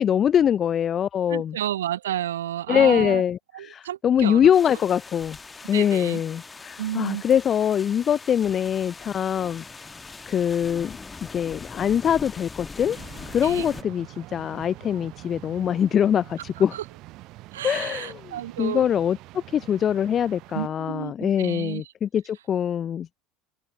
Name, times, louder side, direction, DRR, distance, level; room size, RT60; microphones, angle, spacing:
voice 1, 0.0-1.6 2.7-5.4 5.7-9.8 10.3-11.0 11.3-13.0 13.3-16.8 17.6-18.2 18.6-23.2, left 9 dB, 35° left, 0.5 m, -23 dB
voice 2, 1.3-3.2 3.5-4.5 5.7-6.2 6.8-7.2 13.4-13.7 16.7-16.8 17.5-18.9 20.5-21.8, right 12 dB, 70° right, 1.1 m, -31 dB
sound 1, 4.5-13.8, left 4 dB, 20° left, 1.4 m, -41 dB
sound 2, 12.9-20.7, right 19 dB, 50° right, 0.7 m, -45 dB
figure-of-eight pair, 70°, 0 cm